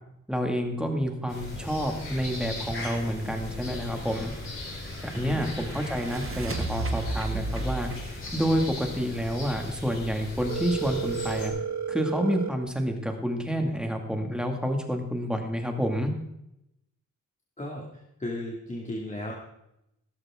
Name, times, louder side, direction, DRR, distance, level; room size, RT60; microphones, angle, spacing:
voice 1, 0.3-4.3 5.0-7.9 8.3-11.5 11.9-16.1, equal, 5° right, 3 dB, 2.2 m, -29 dB
sound 1, 1.3-11.5, left 2 dB, 45° left, 5.4 m, -38 dB
sound 2, 3.9-9.7, right 2 dB, 45° right, 1.7 m, -35 dB
voice 2, 5.1-5.4 17.6-17.8 18.2-19.3, left 1 dB, 25° left, -3 dB, 2.4 m, -35 dB
Telephone, 10.5-12.5, right 7 dB, 65° right, 1.6 m, -32 dB
16.5 x 14.0 x 3.7 m, 0.82 s
wide cardioid pair, 130°, 30 cm